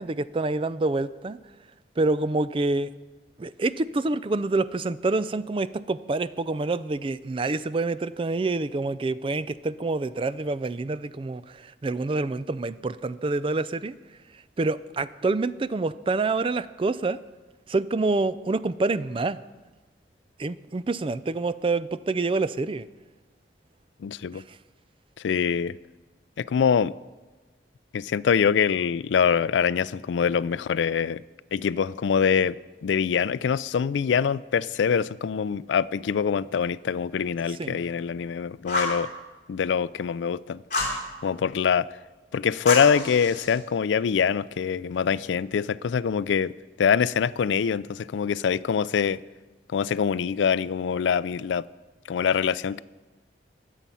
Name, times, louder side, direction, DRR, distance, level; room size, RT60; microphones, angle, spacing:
voice 1, 0.0-1.4 2.0-2.9 3.4-14.0 14.6-17.2 17.7-19.4 20.4-22.9 24.3-24.4 37.6-37.8, right 3 dB, 30° right, 0.4 m, -27 dB
voice 2, 24.0-24.4 25.2-25.8 26.4-26.9 27.9-31.2 31.5-32.6 32.8-39.1 39.5-40.6 41.2-41.9 42.3-46.5 46.8-49.2 49.7-51.7 52.1-52.8, left 7 dB, 85° left, 0.4 m, -24 dB
Fire, 38.7-39.0 40.7-41.0 42.7-43.6, left 2 dB, 45° left, 3.2 m, -28 dB
21.0 x 7.3 x 5.6 m
head